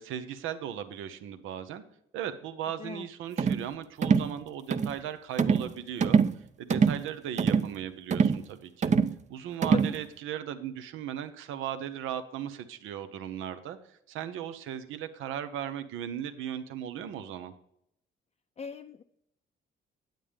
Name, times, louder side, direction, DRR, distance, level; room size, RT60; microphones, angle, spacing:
voice 1, 0.0-1.8 2.1-6.2 6.6-8.9 9.3-17.5, right 9 dB, 90° right, 10 dB, 0.8 m, -37 dB
sound 1, 3.4-3.7 4.0-4.3 4.7-5.0 5.4-5.7 6.0-6.4 6.7-7.0 7.4-7.7 8.1-8.4 8.8-9.2 9.6-10.0, right 6 dB, 35° right, 0.5 m, -24 dB
voice 2, 18.6-19.0, left 6 dB, 35° left, 5 dB, 0.5 m, -39 dB
9.2 x 8.8 x 3.4 m, 0.75 s
cardioid pair, 90°, 20 cm